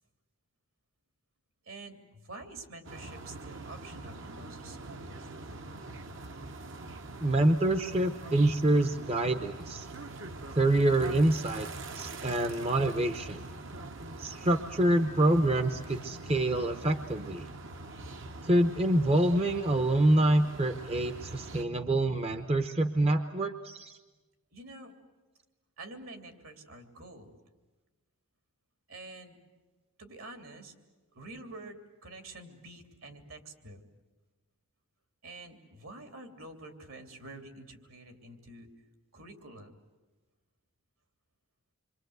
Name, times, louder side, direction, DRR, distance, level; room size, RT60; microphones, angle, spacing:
voice 1, 1.6-5.3 21.8-21.9 24.5-24.9 25.8-27.3 28.9-29.4 30.0-30.7 31.1-33.8 35.2-38.7 39.1-39.7, right 2 dB, 70° right, 5 dB, 3.3 m, -47 dB
sound 1, 2.8-21.6, right 2 dB, 55° right, 1.1 m, -43 dB
voice 2, 7.2-9.9 10.5-11.7 12.0-13.5 14.2-17.5 18.4-24.0, right 1 dB, 25° right, 8 dB, 0.8 m, -26 dB
27.5 x 24.5 x 8.0 m, 1.2 s
head